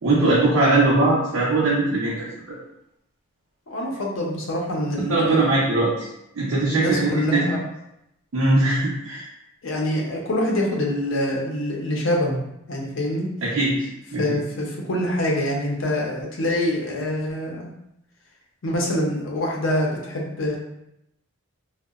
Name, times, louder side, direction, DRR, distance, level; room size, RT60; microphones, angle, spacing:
voice 1, 0.0-2.6 5.1-6.1 6.3-7.6 8.3-9.2 13.4-14.4, right 2 dB, 70° right, -7 dB, 0.6 m, -21 dB
voice 2, 3.7-5.6 6.6-7.6 9.6-12.4 12.7-13.3 14.2-17.7 18.6-20.6, left 1 dB, 65° left, -1 dB, 0.5 m, -25 dB
2.7 x 2.1 x 2.3 m, 0.81 s
head